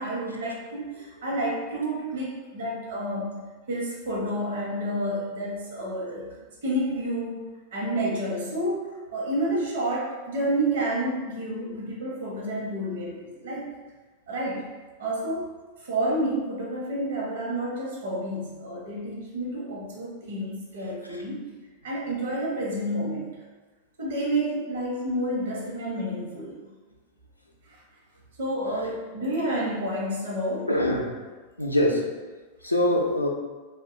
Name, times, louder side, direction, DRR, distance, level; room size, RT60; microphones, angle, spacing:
voice 1, 0.0-6.3 6.6-13.7 14.3-14.6 15.0-15.5 15.8-21.5 21.8-23.4 24.0-26.6 27.7-27.8 28.4-30.8, right 1 dB, 60° right, -4 dB, 0.7 m, -30 dB
voice 2, 30.7-31.1 31.6-32.1 32.6-33.3, left 1 dB, 85° left, 0 dB, 0.3 m, -24 dB
2.6 x 2.2 x 2.5 m, 1.3 s
figure-of-eight pair, 90°, 0 cm